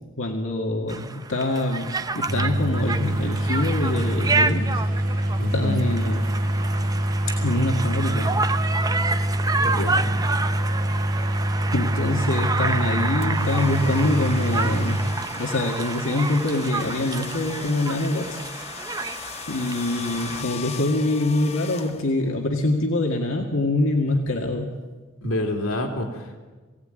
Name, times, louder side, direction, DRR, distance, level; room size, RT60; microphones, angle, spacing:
voice 1, 0.2-4.8 5.5-6.2 6.4-6.9 7.3-8.3 11.7-15.0 15.3-18.7 19.5-24.7, left 2 dB, 65° left, 1 dB, 2.1 m, -25 dB
Conversation, 0.9-20.4, right 3 dB, 20° right, 0.6 m, -29 dB
sound 1, 2.3-15.1, right 1 dB, 40° right, 1.9 m, -25 dB
voice 2, 5.4-6.0 9.6-10.2 25.2-26.4, left 1 dB, 90° left, 2 dB, 2.7 m, -28 dB
sound 2, 13.2-22.4, left 6 dB, 30° left, 1.1 m, -38 dB
22.0 x 17.0 x 9.1 m, 1.3 s
head